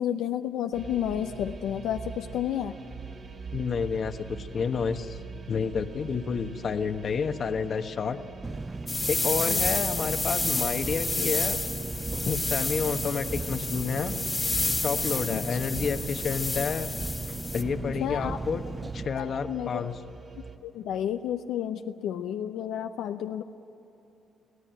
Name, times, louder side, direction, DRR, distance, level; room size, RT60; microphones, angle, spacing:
voice 1, 0.0-2.7 9.5-9.6 15.3-15.4 18.0-18.4 19.2-19.8 20.6-23.4, left 10 dB, 85° left, 6 dB, 0.7 m, -31 dB
sound 1, 0.7-20.6, right 5 dB, 50° right, 2.9 m, -43 dB
voice 2, 3.5-5.2 5.5-8.2 9.0-11.6 12.2-14.1 14.8-16.9 17.5-18.6 18.9-20.0, left 6 dB, 50° left, 8 dB, 1.2 m, -30 dB
Engine, 8.4-19.0, right 3 dB, 20° right, 0.4 m, -36 dB
sound 2, 8.9-17.6, left 3 dB, 20° left, 1.9 m, -30 dB
24.5 x 16.5 x 9.1 m, 2.9 s
cardioid pair, 90°, 0 cm